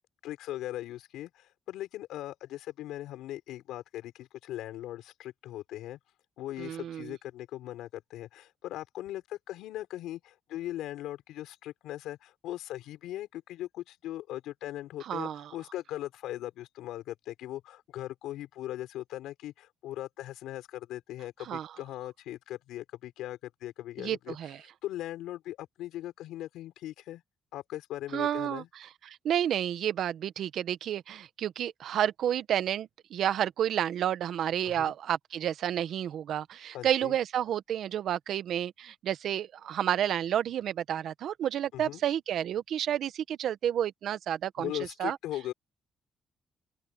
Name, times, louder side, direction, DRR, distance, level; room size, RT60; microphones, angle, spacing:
voice 1, 0.2-6.0 6.4-24.4 24.8-27.2 27.5-28.7 34.6-35.0 36.7-37.2 41.7-42.0 44.6-45.5, left 14 dB, 90° left, 5.5 m, -39 dB
voice 2, 6.6-7.1 15.0-15.5 21.5-21.7 24.0-24.6 28.1-44.7 45.0-45.2, right 10 dB, 70° right, 1.0 m, -30 dB
open air
cardioid pair, 90°, 0 cm